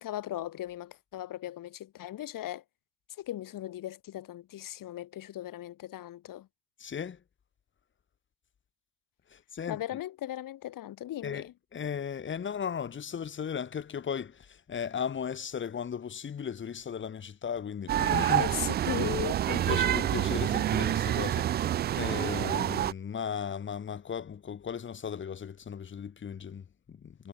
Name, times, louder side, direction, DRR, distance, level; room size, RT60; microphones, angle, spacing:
voice 1, 0.0-2.6 3.2-6.5 9.7-11.5 18.4-19.4, left 13 dB, 45° left, 2.1 m, -38 dB
voice 2, 6.8-7.2 9.3-9.8 11.2-18.5 19.5-27.3, left 7 dB, 25° left, 1.5 m, -36 dB
sound 1, 17.9-22.9, right 11 dB, 25° right, 0.3 m, -27 dB
supercardioid pair, 110°, 47 cm